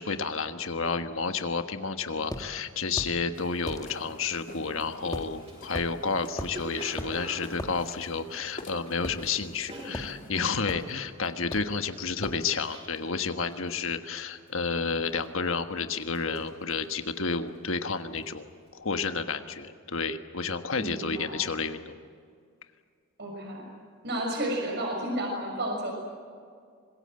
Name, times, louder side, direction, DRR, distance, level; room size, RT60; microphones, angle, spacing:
voice 1, 0.0-18.5 18.7-21.9, left 4 dB, 65° left, 8 dB, 1.5 m, -31 dB
sound 1, 2.3-2.5 3.0-3.2 3.7-3.9 5.1-5.3 5.7-5.9 6.4-6.6 7.0-7.1 7.6-7.7 9.0-9.6 9.9-10.1 10.7-10.9 11.5-11.8 12.2-12.4, equal, 15° left, 1.7 m, -36 dB
sound 2, 3.3-10.3, left 1 dB, 40° left, 2.9 m, -47 dB
Cough, 4.3-4.4 4.7-9.1 9.4-13.2 13.5-13.9 14.1-14.6 15.1-15.7 16.0-17.7 18.0-18.3, right 1 dB, 30° right, 6.7 m, -45 dB
voice 2, 20.8-21.4 23.2-23.7 24.0-25.9, right 1 dB, 50° right, 1 dB, 6.2 m, -32 dB
25.5 x 21.5 x 7.8 m, 2.2 s
head